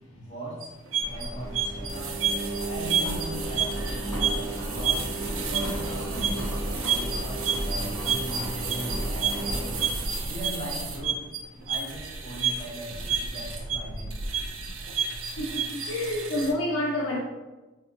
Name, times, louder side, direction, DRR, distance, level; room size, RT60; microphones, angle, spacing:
voice 1, 0.1-0.6 1.0-2.2 2.6-9.8 10.2-11.1 11.6-14.2, equal, 35° left, -7 dB, 1.3 m, -39 dB
sound 1, 0.6-16.5, right 6 dB, 75° right, 0.5 m, -31 dB
Engine, 1.0-11.0, right 1 dB, 15° left, 0.9 m, -33 dB
voice 2, 15.4-17.2, left 1 dB, 70° left, -2 dB, 0.5 m, -28 dB
4.0 x 2.5 x 2.7 m, 1.2 s
head